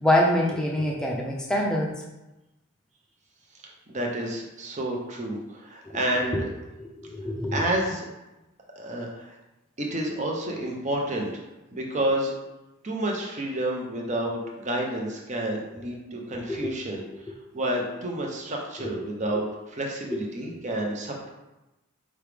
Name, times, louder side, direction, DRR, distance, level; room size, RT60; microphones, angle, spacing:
voice 1, 0.0-1.9 5.9-6.0 6.3-6.4 6.8-7.6 16.5-16.7 20.5-20.6, left 1 dB, 5° left, -3 dB, 0.6 m, -25 dB
voice 2, 3.9-6.5 7.5-8.1 8.8-9.4 9.8-11.3 11.7-12.3 12.8-17.0 17.5-21.3, right 1 dB, 30° right, 0 dB, 0.7 m, -29 dB
4.8 x 3.1 x 3.4 m, 1.0 s
head